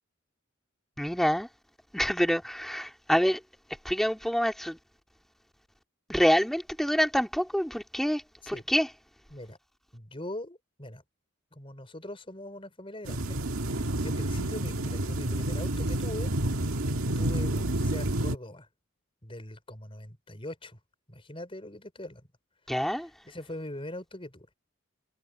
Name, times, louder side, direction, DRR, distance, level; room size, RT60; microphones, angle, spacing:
voice 1, 1.0-1.5 1.9-3.4 3.8-4.8 6.1-8.9 22.7-23.1, equal, ahead, 2.1 m, -26 dB
voice 2, 9.9-11.0 11.5-16.3 17.1-18.7 19.2-20.8 21.1-22.3 22.9-23.0 23.2-24.5, left 1 dB, 25° left, 4.9 m, -42 dB
sound 1, 13.0-18.4, right 1 dB, 80° right, 1.8 m, -29 dB
head